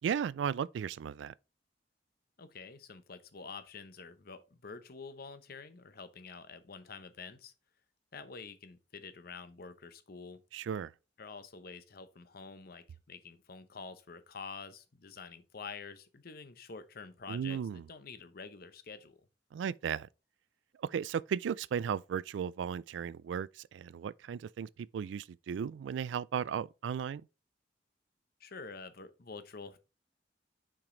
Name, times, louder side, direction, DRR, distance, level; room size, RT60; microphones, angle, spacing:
voice 1, 0.0-1.3 10.5-10.9 17.3-17.8 19.5-20.1 20.8-27.2, right 7 dB, 80° right, 0.3 m, -35 dB
voice 2, 2.4-7.5 8.1-10.4 11.2-19.2 28.4-29.8, left 4 dB, 55° left, 0.8 m, -48 dB
5.8 x 5.1 x 3.8 m
head